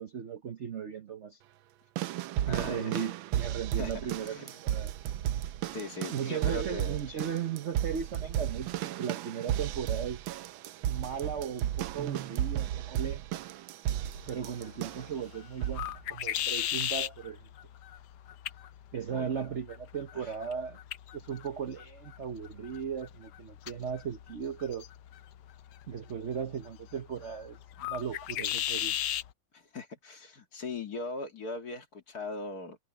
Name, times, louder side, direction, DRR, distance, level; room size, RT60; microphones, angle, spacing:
voice 1, 0.0-1.4 2.5-4.9 6.1-10.2 10.9-13.4 14.3-17.4 18.9-20.8 21.1-24.8 25.9-29.0, right 7 dB, 50° right, 0.9 m, -37 dB
sound 1, 2.0-15.2 15.6-16.0 16.8-16.9, right 12 dB, 75° right, 1.4 m, -34 dB
voice 2, 2.5-3.1 3.8-3.9 4.2-4.6 5.7-7.0 19.1-19.3 20.1-20.3 29.5-32.8, left 3 dB, 45° left, 2.5 m, -39 dB
sound 2, 14.0-29.3, left 12 dB, 65° left, 1.1 m, -38 dB
omnidirectional pair, 2.3 m